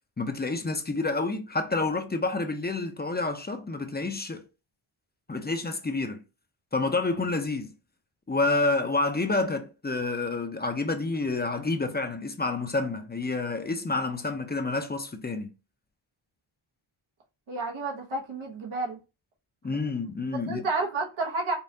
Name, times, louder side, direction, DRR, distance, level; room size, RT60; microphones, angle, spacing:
voice 1, 0.2-4.5 5.3-6.2 6.7-7.7 8.3-15.5 19.6-20.7, left 3 dB, 20° left, 0.6 m, -29 dB
voice 2, 17.5-19.0 20.3-21.6, right 3 dB, 80° right, 1.1 m, -30 dB
5.2 x 2.3 x 2.7 m
wide cardioid pair, 85°, 48 cm